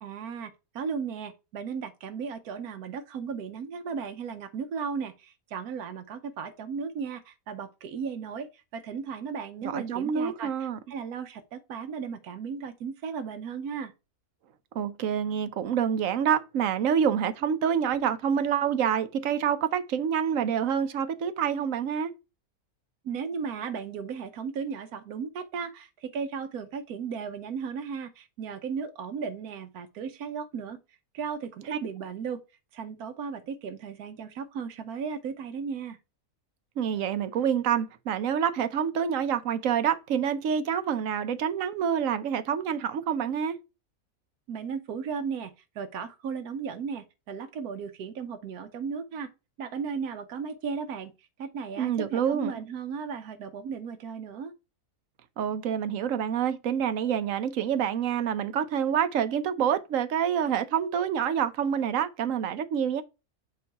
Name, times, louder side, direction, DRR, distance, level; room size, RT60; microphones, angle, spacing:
voice 1, 0.0-13.9 23.0-30.8 31.1-32.4 32.7-36.0 44.5-49.3 49.6-54.5, right 6 dB, 85° right, 1.2 m, -35 dB
voice 2, 9.6-10.8 14.7-22.1 31.7-31.8 36.8-43.6 51.8-52.5 55.4-63.0, right 8 dB, 65° right, 1.0 m, -27 dB
7.7 x 3.1 x 4.5 m
omnidirectional pair, 1.5 m